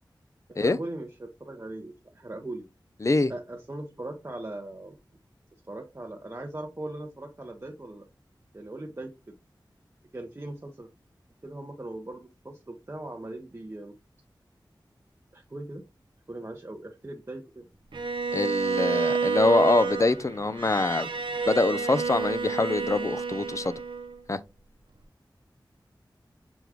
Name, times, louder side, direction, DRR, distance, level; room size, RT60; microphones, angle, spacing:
voice 1, 0.5-2.6 3.3-5.0 5.7-8.1 8.5-9.4 10.1-10.9 11.4-13.9 15.3-15.8 16.3-17.7, right 2 dB, 30° right, 0.7 m, -39 dB
voice 2, 3.0-3.3 18.3-21.1 21.5-23.8 24.3-24.4, left 3 dB, 40° left, 0.4 m, -24 dB
Bowed string instrument, 17.9-24.2, right 5 dB, 75° right, 0.7 m, -29 dB
6.1 x 2.3 x 3.4 m
wide cardioid pair, 50°, 8 cm